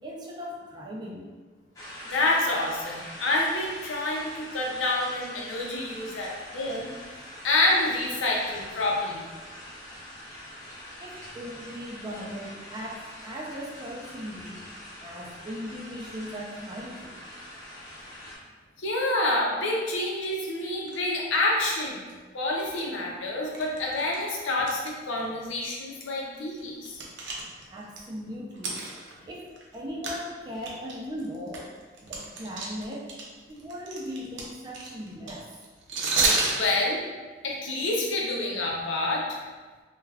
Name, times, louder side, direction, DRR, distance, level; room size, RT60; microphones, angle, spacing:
voice 1, 0.0-1.3 11.0-14.6 15.0-17.2 27.2-27.3 27.7-28.8 29.3-31.7 32.1-33.1 33.5-35.5, equal, 20° right, -3 dB, 0.4 m, -38 dB
sound 1, 1.8-18.4, equal, 20° left, 0.6 m, -44 dB
voice 2, 2.1-6.9 7.4-9.3 18.8-22.1 22.3-27.0 36.5-37.0 37.4-39.4, left 2 dB, 85° left, -2 dB, 0.6 m, -27 dB
sound 2, 20.9-21.0 21.3-21.6 22.1-22.2 22.6-22.8 23.5-24.9 25.2-25.3 25.9-26.0 26.4-28.0 28.5-29.8 30.0-30.2 30.6-33.2 33.5-36.7, right 3 dB, 75° right, 0.5 m, -30 dB
2.3 x 2.3 x 3.3 m, 1.4 s
head